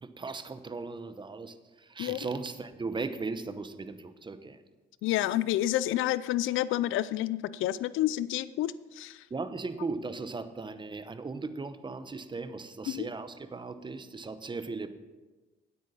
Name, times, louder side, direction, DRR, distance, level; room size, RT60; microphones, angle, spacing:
voice 1, 0.0-4.6 9.3-14.9, right 3 dB, 25° right, 11 dB, 0.9 m, -37 dB
voice 2, 5.0-9.2 12.9-13.1, left 14 dB, 85° left, 17 dB, 0.4 m, -29 dB
9.5 x 8.3 x 5.6 m, 1.2 s
cardioid pair, 90°, 20 cm